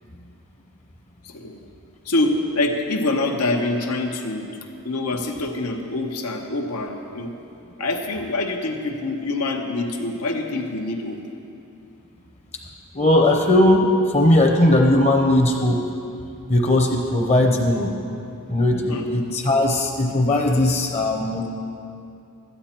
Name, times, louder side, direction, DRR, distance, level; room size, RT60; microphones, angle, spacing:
voice 1, 1.2-1.7 2.0-4.5 4.8-7.3 7.8-11.2 18.9-19.1, left 2 dB, 85° left, 2 dB, 1.0 m, -25 dB
voice 2, 12.9-15.8 16.5-17.9 18.5-21.5, left 1 dB, 30° left, 3 dB, 0.8 m, -18 dB
13.0 x 9.5 x 4.4 m, 2.6 s
head